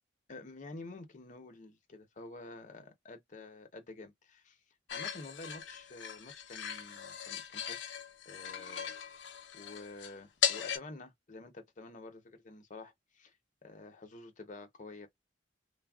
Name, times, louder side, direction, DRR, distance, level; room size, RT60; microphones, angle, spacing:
voice 1, 0.3-4.6 4.9-7.8 8.3-8.9 9.5-13.3 13.6-15.1, left 2 dB, 45° left, 0.7 m, -49 dB
sound 1, 4.9-10.8, left 9 dB, 75° left, 0.7 m, -38 dB
3.3 x 2.2 x 2.3 m
head